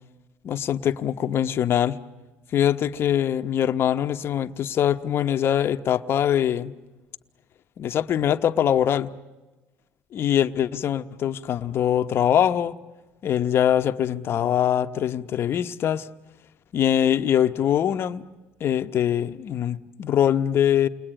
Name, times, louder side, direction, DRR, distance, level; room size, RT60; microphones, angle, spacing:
voice 1, 0.4-2.0 2.5-6.7 7.8-9.1 10.1-12.8 13.2-16.1 16.7-18.2 18.6-20.9, left 10 dB, 55° left, 1.0 m, -23 dB
29.0 x 22.0 x 9.0 m
cardioid pair, 95°, 5 cm